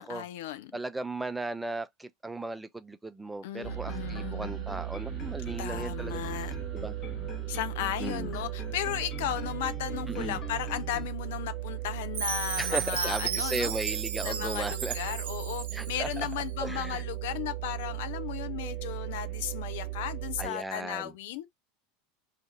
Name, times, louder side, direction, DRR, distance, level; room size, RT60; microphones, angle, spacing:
voice 1, 0.0-0.7 3.4-4.6 5.6-6.5 7.5-13.7 14.2-21.4, left 12 dB, 60° left, 0.4 m, -35 dB
voice 2, 0.7-6.2 6.7-7.0 8.0-8.3 10.1-10.4 12.6-15.0 15.7-16.3 16.6-17.0 20.4-21.1, right 2 dB, 10° right, 0.4 m, -36 dB
sound 1, 3.6-11.1, left 6 dB, 35° left, 1.0 m, -45 dB
sound 2, 3.6-20.5, right 15 dB, 45° right, 1.0 m, -37 dB
Chime, 12.1-16.2, right 8 dB, 65° right, 0.5 m, -34 dB
2.5 x 2.5 x 3.9 m
figure-of-eight pair, 80°, 0 cm